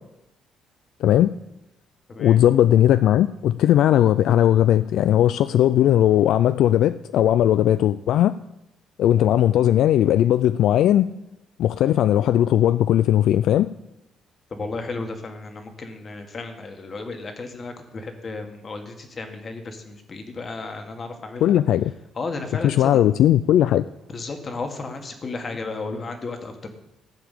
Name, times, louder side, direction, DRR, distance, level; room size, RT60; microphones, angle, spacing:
voice 1, 1.0-1.3 2.2-8.3 9.0-11.1 11.6-13.7 21.4-21.9 22.6-23.8, left 11 dB, 70° left, 13 dB, 0.3 m, -18 dB
voice 2, 14.5-21.6 22.1-23.0 24.1-26.7, left 3 dB, 35° left, 6 dB, 1.6 m, -34 dB
14.5 x 4.9 x 8.3 m, 0.88 s
cardioid pair, 130°, 0 cm